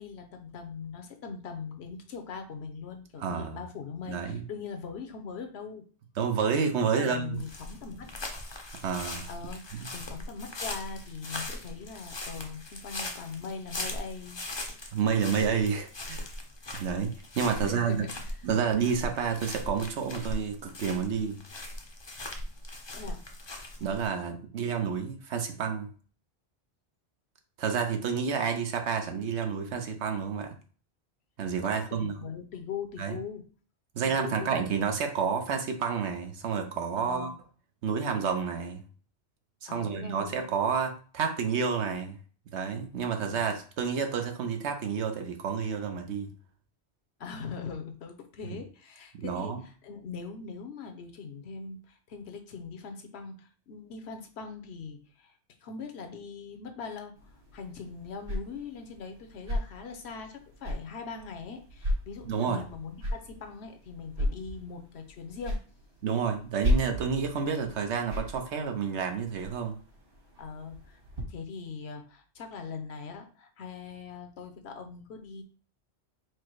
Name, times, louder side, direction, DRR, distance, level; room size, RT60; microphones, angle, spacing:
voice 1, 0.0-5.8 6.9-8.1 9.3-14.4 17.5-18.4 22.9-23.2 31.9-33.5 34.0-34.8 37.0-37.4 39.7-40.5 43.3-43.5 47.2-55.3 55.6-65.6 70.4-71.0 71.3-75.4, left 5 dB, 70° left, 1.0 m, -41 dB
voice 2, 3.2-3.6 4.1-4.4 6.2-7.4 8.8-9.3 9.8-9.9 14.9-16.2 16.7-18.0 18.4-21.4 23.8-25.9 27.6-30.5 31.4-32.1 33.0-33.2 33.9-37.3 37.8-38.8 39.6-42.2 42.5-46.3 49.1-49.6 62.2-62.6 66.0-69.8, right 6 dB, 80° right, 1.0 m, -30 dB
sound 1, 7.3-24.1, left 2 dB, 30° left, 0.5 m, -40 dB
sound 2, 57.2-71.2, left 1 dB, 55° right, 1.9 m, -36 dB
4.6 x 2.1 x 4.5 m
omnidirectional pair, 1.2 m